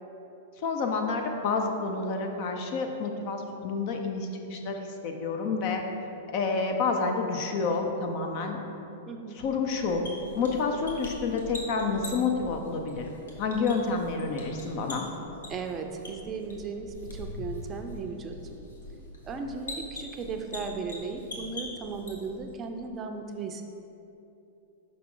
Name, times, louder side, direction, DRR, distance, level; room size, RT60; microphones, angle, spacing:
voice 1, 0.6-5.8 6.3-8.6 9.3-10.0 10.4-15.1, left 4 dB, 50° left, 3 dB, 0.7 m, -29 dB
voice 2, 9.1-9.4 15.5-18.4 19.3-23.6, right 4 dB, 30° right, 4 dB, 0.5 m, -36 dB
sound 1, 9.8-22.5, left 1 dB, 90° left, 1.1 m, -43 dB
5.8 x 5.1 x 3.8 m, 2.9 s
hypercardioid pair, 115°, 0 cm